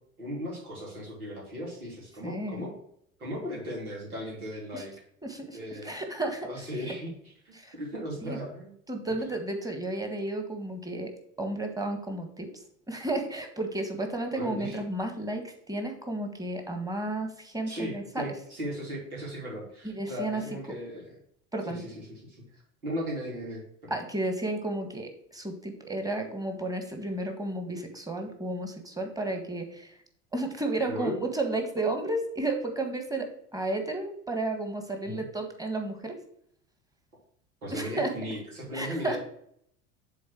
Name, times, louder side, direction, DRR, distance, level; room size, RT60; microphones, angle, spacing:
voice 1, 0.2-2.7 3.2-4.9 5.5-6.0 6.4-7.1 7.4-8.7 14.3-14.8 17.7-21.1 21.6-22.4 22.8-24.0 30.9-31.2 35.0-35.2 37.6-39.2, equal, 85° right, -3 dB, 3.1 m, -37 dB
voice 2, 2.2-2.7 4.7-4.8 5.2-6.5 7.6-7.7 8.2-8.4 8.9-11.1 11.4-12.5 12.9-18.2 19.8-20.4 21.5-21.8 23.9-30.0 30.3-36.2 37.7-38.1 38.7-39.2, right 2 dB, 10° right, 5 dB, 1.6 m, -32 dB
7.3 x 3.9 x 6.1 m, 0.69 s
hypercardioid pair, 75°, 43 cm